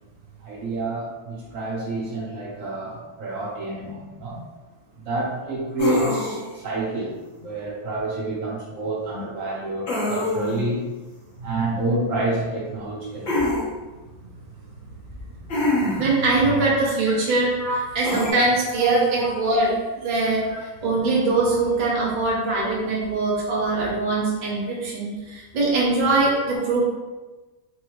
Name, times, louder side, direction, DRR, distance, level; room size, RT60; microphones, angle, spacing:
voice 1, 0.4-4.4 4.9-10.9 11.4-13.4 16.3-16.5 17.6-17.8 18.2-18.3 18.7-18.9 19.2-19.3 20.5-20.6 22.0-22.1, right 2 dB, 70° right, -5 dB, 1.2 m, -28 dB
sound 1, 5.8-6.6 9.9-10.7 13.3-13.6 15.5-16.2 18.0-18.3, left 1 dB, 65° left, 1.5 m, -24 dB
voice 2, 16.0-17.5 17.9-19.7 20.0-26.9, right 3 dB, 40° right, -5 dB, 0.9 m, -22 dB
3.9 x 2.6 x 3.0 m, 1.2 s
omnidirectional pair, 1.5 m